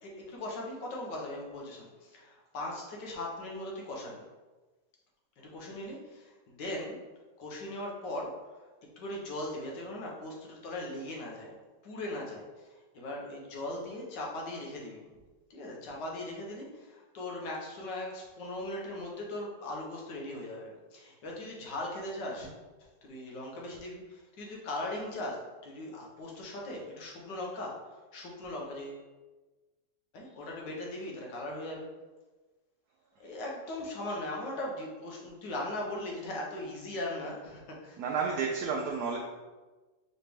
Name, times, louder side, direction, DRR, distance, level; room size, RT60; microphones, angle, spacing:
voice 1, 0.0-4.3 5.4-7.0 7.4-8.7 9.0-11.5 11.8-15.1 15.5-22.5 23.0-29.0 30.1-31.9 33.2-38.0, left 1 dB, 80° left, -2 dB, 1.6 m, -39 dB
voice 2, 38.0-39.2, right 5 dB, 70° right, 0 dB, 1.0 m, -31 dB
4.9 x 3.2 x 3.3 m, 1.2 s
omnidirectional pair, 1.9 m